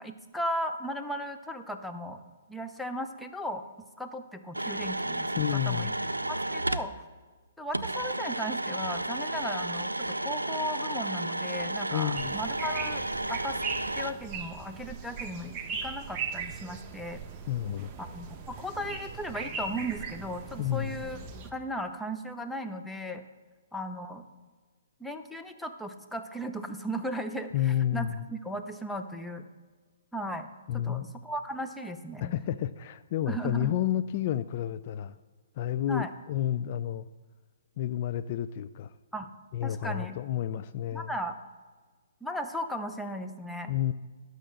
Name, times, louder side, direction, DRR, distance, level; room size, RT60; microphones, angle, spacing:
voice 1, 0.0-2.2 2.5-3.6 4.0-5.9 6.3-6.9 7.6-13.0 13.3-13.6 14.0-17.2 18.0-21.2 21.4-23.2 23.7-24.2 25.0-29.5 30.1-30.5 30.7-32.3 33.3-33.7 35.9-36.1 39.1-39.3 39.6-40.1 40.9-41.4 42.2-43.7, equal, ahead, 6 dB, 0.7 m, -36 dB
sound 1, 4.5-6.9 7.7-14.1, right 1 dB, 90° right, 0.5 m, -32 dB
voice 2, 5.4-5.9 11.9-12.4 17.5-17.9 20.6-21.0 27.5-28.3 30.7-31.2 32.2-35.2 35.6-37.1 37.8-38.9 39.5-41.1 43.7-43.9, left 11 dB, 40° left, 12 dB, 0.4 m, -30 dB
sound 2, 12.1-21.5, right 5 dB, 25° right, 1.0 m, -39 dB
12.0 x 6.4 x 6.3 m, 1.4 s
figure-of-eight pair, 125°, 0 cm